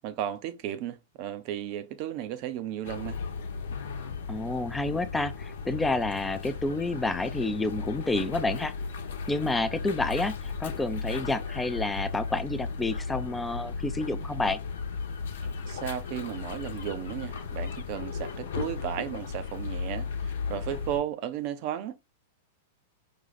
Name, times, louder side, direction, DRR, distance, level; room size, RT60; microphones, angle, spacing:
voice 1, 0.0-3.2 15.7-22.0, right 11 dB, 50° right, 0.7 m, -34 dB
sound 1, 2.8-21.0, left 5 dB, 70° left, 0.9 m, -35 dB
voice 2, 4.3-8.7 9.3-14.6, left 2 dB, 10° left, 0.6 m, -29 dB
5.3 x 2.4 x 4.0 m
hypercardioid pair, 105°, 0 cm